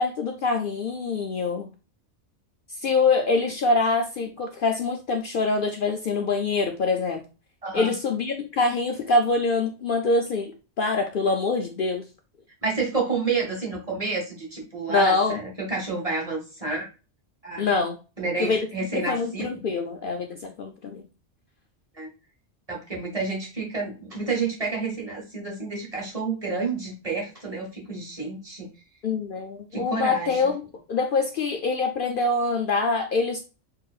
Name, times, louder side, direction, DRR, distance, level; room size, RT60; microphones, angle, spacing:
voice 1, 0.0-1.7 2.8-7.2 7.7-12.1 14.9-15.4 17.6-18.0 18.4-18.6 18.9-21.0 29.0-30.5 30.9-33.4, left 3 dB, 55° left, 4 dB, 0.7 m, -24 dB
voice 2, 7.6-8.0 12.6-16.9 17.4-17.7 18.2-19.4 21.9-22.1 22.7-28.7 29.7-30.4, right 4 dB, 30° right, -1 dB, 1.4 m, -29 dB
6.5 x 2.9 x 2.3 m, 0.32 s
omnidirectional pair, 1.2 m